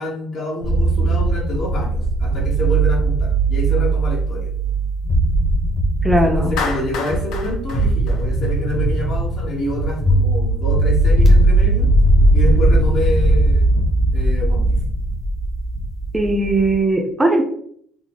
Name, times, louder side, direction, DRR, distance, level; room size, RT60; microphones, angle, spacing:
voice 1, 0.0-4.5 6.1-11.9 12.3-13.8 14.1-14.8, left 1 dB, 60° left, -3 dB, 1.3 m, -27 dB
sound 1, 0.6-16.8, right 2 dB, 25° left, 0.9 m, -18 dB
voice 2, 6.0-6.6 16.1-17.4, right 1 dB, 15° right, 2 dB, 0.5 m, -18 dB
Clapping, 6.6-8.9, left 5 dB, 80° left, 0.6 m, -29 dB
3.8 x 2.0 x 3.5 m, 0.64 s
cardioid pair, 115°, 0 cm